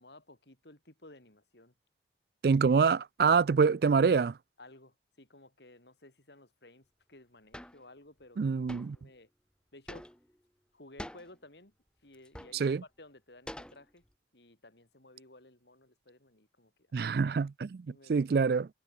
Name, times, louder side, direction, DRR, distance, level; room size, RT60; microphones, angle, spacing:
voice 1, 0.0-1.7 4.6-8.5 8.9-9.3 9.7-10.1 10.7-11.7 12.0-14.0 14.3-17.1 17.9-18.1, left 2 dB, 70° left, 4.3 m, -56 dB
voice 2, 2.4-4.4 8.4-9.0 12.5-12.8 16.9-18.7, right 5 dB, 55° right, 0.3 m, -26 dB
sound 1, 7.5-7.8 8.7-9.0 9.9-10.4 11.0-11.3 12.1-12.7 13.5-14.1, equal, 5° left, 1.9 m, -45 dB
head